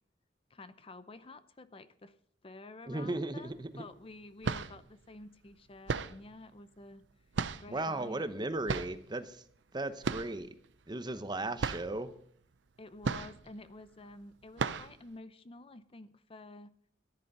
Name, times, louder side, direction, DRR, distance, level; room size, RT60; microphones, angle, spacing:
voice 1, 0.5-2.1 2.4-7.0 7.6-8.2 12.8-16.7, left 2 dB, 30° left, 13 dB, 0.6 m, -50 dB
voice 2, 2.9-3.8 7.7-9.4 9.7-10.5 10.9-12.1, right 2 dB, 25° right, 11 dB, 0.9 m, -36 dB
sound 1, 3.5-3.6 4.2-4.9 5.9-6.3 7.3-7.9 8.7-9.1 10.0-10.5 10.7-10.8 11.2-11.3 11.6-12.0 13.0-13.6 14.0-14.1 14.6-15.0, right 4 dB, 90° right, 0.6 m, -35 dB
14.0 x 10.5 x 5.5 m, 0.64 s
head